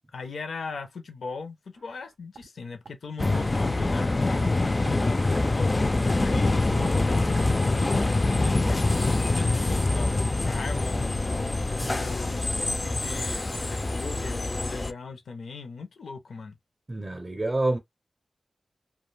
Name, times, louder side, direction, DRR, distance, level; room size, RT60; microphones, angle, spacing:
voice 1, 0.1-4.4 4.8-5.8 6.2-11.5 11.9-16.6, left 4 dB, 85° left, 0.5 m, -39 dB
sound 1, 1.7-2.5 2.8-2.9 3.3-3.4 3.8-3.9 4.3-4.4 4.8-4.9 5.3-5.5 5.8-6.0 6.3-6.4 6.8-6.9 7.3-7.4 7.8-7.9 8.3-8.4, right 4 dB, 85° right, 0.3 m, -44 dB
sound 2, 3.2-14.9, left 2 dB, 35° left, 0.3 m, -25 dB
voice 2, 16.9-17.8, right 2 dB, 30° right, 0.5 m, -28 dB
2.3 x 2.2 x 3.1 m
cardioid pair, 55°, 0 cm